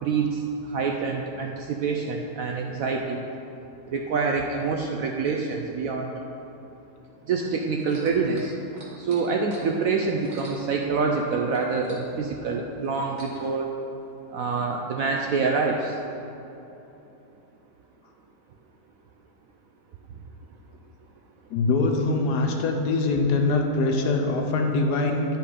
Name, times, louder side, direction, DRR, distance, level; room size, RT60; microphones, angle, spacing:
voice 1, 0.0-3.2 3.9-6.1 7.3-8.5 9.0-13.7 14.3-15.9, right 4 dB, 70° right, 1 dB, 0.8 m, -26 dB
sound 1, 7.8-11.3 11.5-13.5 14.3-14.4, right 1 dB, 30° right, 1.2 m, -47 dB
voice 2, 21.5-25.3, left 3 dB, 70° left, 3 dB, 1.2 m, -23 dB
10.5 x 4.1 x 4.9 m, 3.0 s
omnidirectional pair, 1.9 m